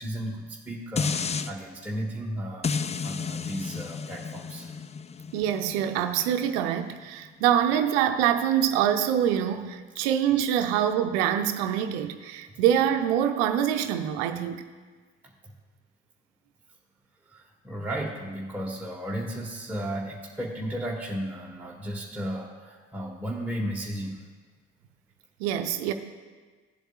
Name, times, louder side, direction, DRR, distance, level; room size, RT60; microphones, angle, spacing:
voice 1, 0.0-4.7 15.2-15.5 17.2-24.2, equal, 5° right, 1.3 m, -34 dB
sound 1, 1.0-1.5 2.6-7.8 8.2-8.3, left 5 dB, 20° left, 0.4 m, -33 dB
voice 2, 5.3-14.7 25.4-25.9, right 10 dB, 80° right, 0.6 m, -25 dB
15.5 x 7.9 x 2.4 m
hypercardioid pair, 45°, 34 cm